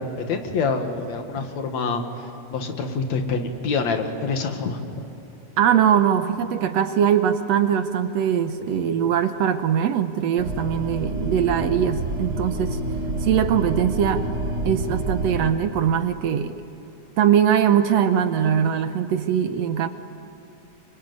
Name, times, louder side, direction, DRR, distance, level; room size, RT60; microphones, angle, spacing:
voice 1, 0.0-2.0 2.5-5.0 8.7-8.9, left 4 dB, 65° left, 6 dB, 2.9 m, -26 dB
voice 2, 5.6-12.8 13.2-14.3 14.7-16.6 17.2-19.9, right 9 dB, 70° right, 9 dB, 1.8 m, -21 dB
sound 1, 10.4-15.5, right 1 dB, 30° right, 2.8 m, -28 dB
25.5 x 23.5 x 9.4 m, 2.9 s
omnidirectional pair, 3.4 m